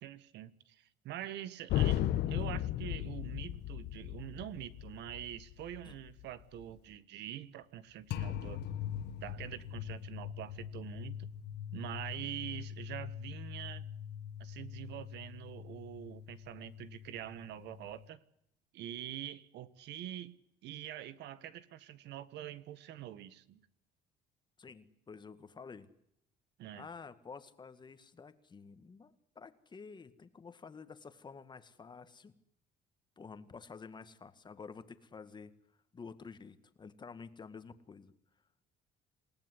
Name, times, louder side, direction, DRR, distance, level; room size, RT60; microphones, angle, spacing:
voice 1, 0.0-8.6 9.2-11.3 11.7-13.9 14.4-18.2 18.7-23.6 26.6-26.9, right 12 dB, 70° right, 15 dB, 1.7 m, -45 dB
sound 1, 1.7-6.8 8.1-18.1, left 12 dB, 65° left, 1.4 m, -39 dB
voice 2, 24.6-25.9 26.7-32.3 33.2-35.5 35.9-38.1, left 5 dB, 25° left, 11 dB, 1.9 m, -50 dB
28.0 x 18.0 x 9.9 m, 0.75 s
cardioid pair, 135°, 18 cm